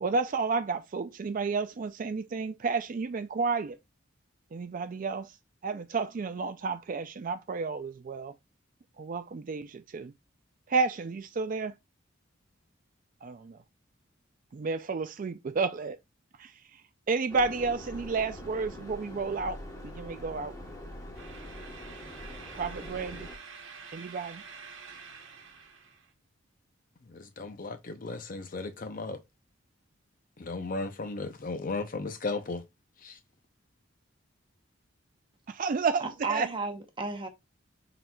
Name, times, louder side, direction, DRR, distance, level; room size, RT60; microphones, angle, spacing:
voice 1, 0.0-3.8 4.5-5.3 5.6-8.3 9.0-10.1 10.7-11.7 13.2-13.6 14.5-16.0 16.4-16.8 17.1-20.5 22.5-23.3 23.9-24.4 35.5-36.5, right 4 dB, 40° right, 0.4 m, -31 dB
sound 1, 17.3-23.4, left 1 dB, 20° left, 1.1 m, -43 dB
sound 2, 21.1-26.1, right 5 dB, 75° right, 1.0 m, -48 dB
voice 2, 27.0-29.2 30.4-32.6 33.0-33.2, left 3 dB, 45° left, 0.7 m, -35 dB
voice 3, 36.0-37.3, right 4 dB, 25° right, 0.9 m, -33 dB
5.8 x 3.9 x 2.3 m
head